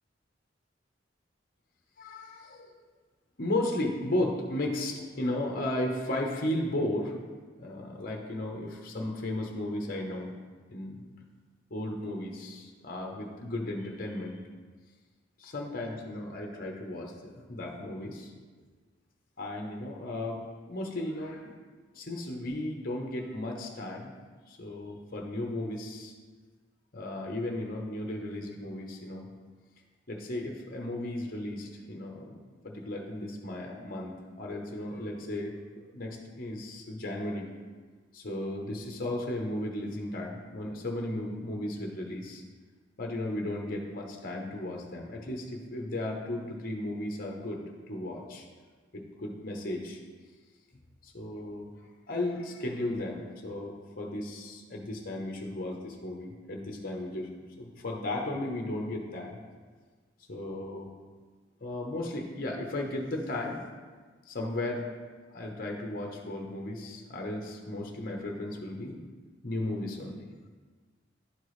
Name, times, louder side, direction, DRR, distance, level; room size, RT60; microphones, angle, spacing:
voice 1, 2.0-2.7 3.4-7.1 7.6-10.3 10.7-11.1 11.7-14.4 15.4-17.1 17.5-18.3 19.4-20.4 20.7-21.5 21.9-24.1 24.5-26.1 26.9-29.3 30.1-35.5 35.9-37.5 38.1-42.4 43.0-47.6 47.9-48.4 48.9-50.0 51.0-51.7 52.1-57.3 57.6-59.4 60.3-60.9 61.6-63.6 64.3-64.9 65.3-69.0 69.4-70.2, left 1 dB, 50° left, 1 dB, 0.9 m, -35 dB
11.0 x 4.5 x 3.2 m, 1.4 s
head